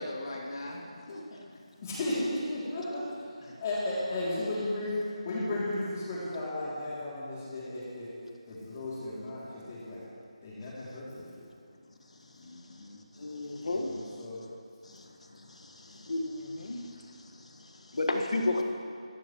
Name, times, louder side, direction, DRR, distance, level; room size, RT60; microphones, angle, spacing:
voice 1, 0.0-1.4 3.4-3.6 12.4-13.0, left 1 dB, 50° left, -2 dB, 2.6 m, -41 dB
voice 2, 1.8-3.2 3.6-5.0 5.2-8.1 8.5-10.0 10.4-11.4 13.7-14.4, left 1 dB, 30° left, -8 dB, 2.8 m, -34 dB
voice 3, 13.1-14.2 14.8-18.6, left 2 dB, 70° left, 3 dB, 1.6 m, -34 dB
17.0 x 13.0 x 3.1 m, 2.2 s
figure-of-eight pair, 165°, 4 cm